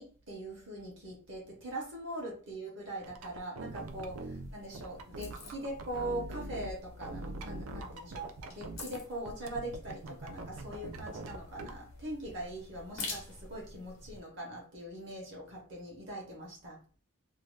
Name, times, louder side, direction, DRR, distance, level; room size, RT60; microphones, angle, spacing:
voice 1, 0.0-4.2 4.5-16.8, right 1 dB, 55° right, -2 dB, 1.0 m, -42 dB
sound 1, 3.0-6.7 7.0-9.0 9.2-11.7, right 2 dB, 85° right, 0.4 m, -43 dB
sound 2, 3.7-14.2, left 3 dB, 75° left, 0.9 m, -48 dB
2.7 x 2.3 x 3.2 m, 0.41 s
head